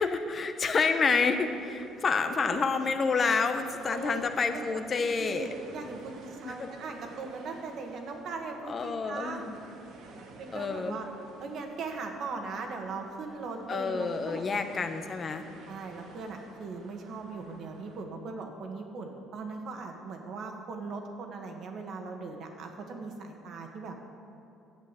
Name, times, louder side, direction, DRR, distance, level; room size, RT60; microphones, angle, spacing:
voice 1, 0.0-5.5 6.4-6.7 8.7-9.6 10.5-11.0 13.7-15.5, left 4 dB, 30° left, 7 dB, 0.8 m, -28 dB
sound 1, 1.0-18.0, right 3 dB, 70° right, 1.7 m, -53 dB
voice 2, 3.8-4.6 5.2-9.5 10.4-11.1 11.4-14.4 15.7-24.0, right 4 dB, 50° right, 3 dB, 1.6 m, -39 dB
11.0 x 8.2 x 8.3 m, 2.8 s
cardioid pair, 145°, 0 cm